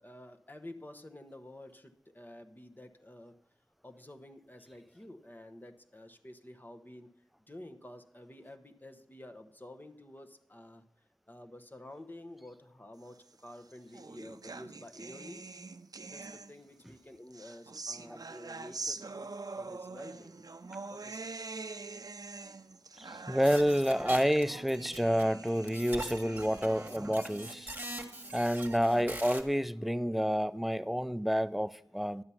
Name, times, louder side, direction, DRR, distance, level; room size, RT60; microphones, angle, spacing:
voice 1, 0.0-3.4 3.8-7.1 7.5-10.8 11.3-15.4 16.1-20.4 20.9-21.3, left 1 dB, 25° left, 1.0 m, -50 dB
sound 1, 13.4-16.8 17.3-28.8, right 3 dB, 55° right, 0.5 m, -45 dB
voice 2, 23.0-27.7 28.3-32.2, equal, ahead, 0.4 m, -29 dB
sound 2, 23.4-25.2 25.5-29.4, right 1 dB, 25° right, 1.5 m, -42 dB
11.0 x 7.7 x 5.7 m
wide cardioid pair, 60°, 8 cm